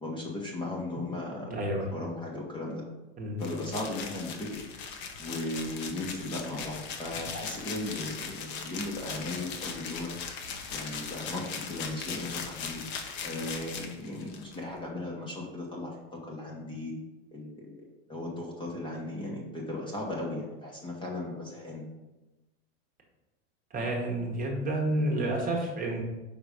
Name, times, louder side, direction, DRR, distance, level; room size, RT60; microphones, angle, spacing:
voice 1, 0.0-1.5 1.9-2.8 3.4-4.6 5.2-10.1 10.7-12.8 13.2-16.9 17.3-21.8, left 2 dB, 15° left, -2 dB, 1.0 m, -37 dB
voice 2, 1.5-1.9 3.2-3.4 23.7-26.0, right 1 dB, 25° right, -1 dB, 1.2 m, -30 dB
sound 1, 3.4-14.6, left 6 dB, 50° left, 1.0 m, -39 dB
5.2 x 3.9 x 4.9 m, 1.1 s
supercardioid pair, 130°, 36 cm